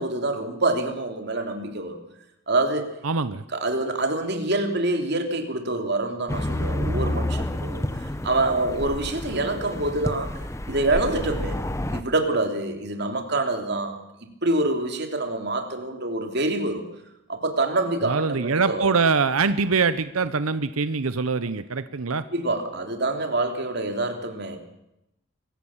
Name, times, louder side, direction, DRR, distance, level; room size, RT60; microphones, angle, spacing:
voice 1, 0.0-2.0 2.5-2.9 3.5-10.3 10.7-11.6 11.9-16.8 17.3-18.9 22.3-24.6, right 2 dB, 50° right, 5 dB, 3.1 m, -26 dB
voice 2, 3.0-3.4 18.0-22.2, right 4 dB, 85° right, 13 dB, 0.9 m, -23 dB
sound 1, 6.3-12.0, left 1 dB, 15° left, 0.9 m, -29 dB
25.0 x 16.5 x 7.3 m, 0.86 s
head